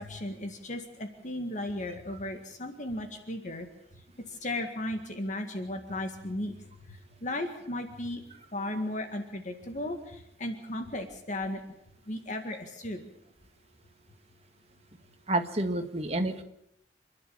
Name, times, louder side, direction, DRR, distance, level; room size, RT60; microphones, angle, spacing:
voice 1, 0.0-3.7 4.4-6.5 7.2-8.2 8.5-11.6 12.1-13.0, left 1 dB, 45° left, 6 dB, 1.9 m, -35 dB
voice 2, 15.3-16.4, right 2 dB, 35° right, 6 dB, 1.7 m, -29 dB
27.5 x 11.0 x 8.7 m, 0.75 s
head